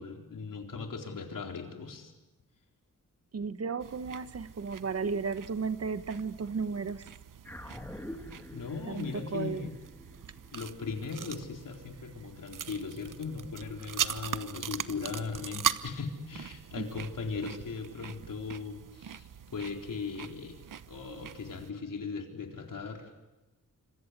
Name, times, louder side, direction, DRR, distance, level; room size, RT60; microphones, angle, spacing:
voice 1, 0.0-2.1 8.5-9.7 10.5-20.6 20.9-23.1, left 4 dB, 75° left, 3 dB, 4.1 m, -38 dB
voice 2, 3.3-7.1 8.9-9.7 16.8-16.9, right 5 dB, 50° right, 13 dB, 1.1 m, -34 dB
sound 1, 3.8-21.7, right 8 dB, 70° right, 0.9 m, -41 dB
sound 2, 7.4-12.1, left 1 dB, 5° left, 2.1 m, -47 dB
26.5 x 26.0 x 8.2 m, 1.1 s
wide cardioid pair, 130°, 33 cm